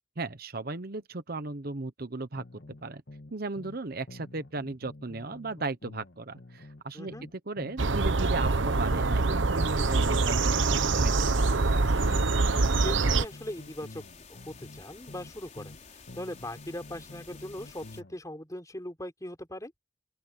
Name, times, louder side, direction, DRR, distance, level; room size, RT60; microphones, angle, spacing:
voice 1, 0.2-2.4 2.8-3.0 3.3-11.3, right 3 dB, 55° right, 1.1 m, -36 dB
sound 1, 2.4-3.8 4.1-7.8 8.1-11.8 12.1-15.8 16.1-18.2, left 2 dB, 60° left, 1.8 m, -48 dB
voice 2, 6.9-7.3 12.1-12.5 12.8-15.8 16.1-19.7, left 1 dB, 20° left, 4.8 m, -40 dB
sound 2, 7.8-13.2, right 3 dB, 85° right, 1.1 m, -25 dB
sound 3, 9.6-18.0, left 5 dB, 40° left, 4.7 m, -51 dB
open air
head